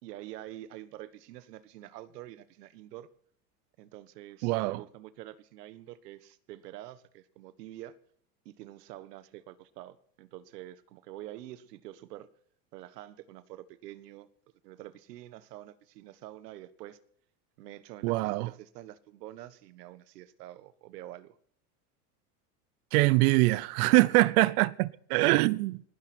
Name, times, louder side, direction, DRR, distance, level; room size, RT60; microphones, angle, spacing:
voice 1, 0.0-3.1 3.8-7.9 8.4-12.3 12.7-14.3 14.6-17.0 17.6-21.4, right 14 dB, 85° right, 1.5 m, -47 dB
voice 2, 4.4-4.8 18.0-18.5 22.9-25.8, right 22 dB, 70° right, 0.9 m, -24 dB
19.5 x 16.0 x 4.5 m
supercardioid pair, 115°, 47 cm